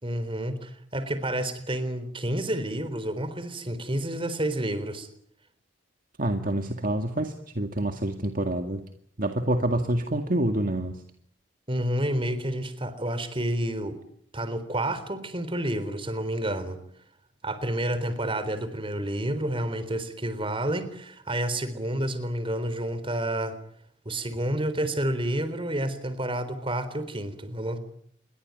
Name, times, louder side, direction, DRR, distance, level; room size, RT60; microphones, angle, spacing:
voice 1, 0.0-5.1 11.7-14.0 14.3-16.8 17.4-23.6 24.1-27.8, right 1 dB, 25° right, 12 dB, 3.9 m, -29 dB
voice 2, 6.2-8.8 9.2-11.0, right 1 dB, 45° right, 6 dB, 2.0 m, -27 dB
28.0 x 23.0 x 9.2 m, 0.68 s
head